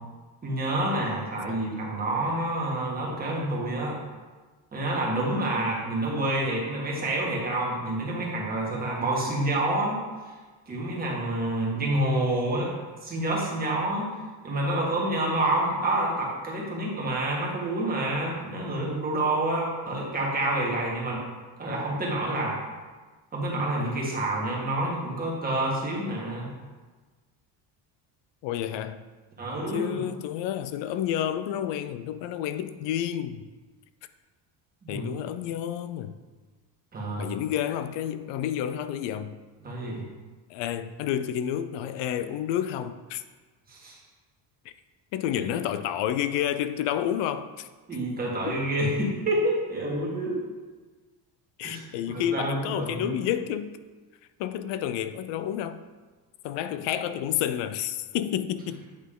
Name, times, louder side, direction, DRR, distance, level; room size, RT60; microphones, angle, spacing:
voice 1, 0.4-4.0 4.7-10.0 10.7-12.8 13.0-14.1 14.4-21.2 21.6-22.6 23.3-26.5 29.4-30.0 34.8-35.1 36.9-37.3 39.6-40.0 43.7-44.0 47.9-50.4 51.6-51.8 52.1-53.1, right 1 dB, 20° right, 1.7 m, -28 dB
voice 2, 28.4-29.0 29.7-33.5 34.9-36.2 37.2-39.4 40.5-43.2 45.1-47.7 48.5-48.6 51.6-53.8 54.4-55.8 56.4-58.8, left 10 dB, 75° left, 0.6 m, -30 dB
8.8 x 5.8 x 3.7 m
cardioid pair, 170°, 44 cm